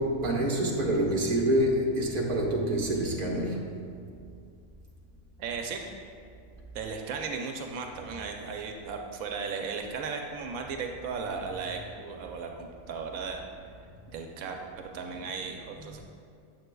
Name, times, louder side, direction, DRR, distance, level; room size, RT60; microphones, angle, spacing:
voice 1, 0.0-3.7 15.7-15.8, right 1 dB, 40° right, -3 dB, 1.1 m, -27 dB
voice 2, 5.4-5.9 6.7-13.4 14.1-16.0, right 5 dB, 85° right, 3 dB, 1.0 m, -36 dB
7.8 x 7.4 x 2.2 m, 2.3 s
omnidirectional pair, 1.4 m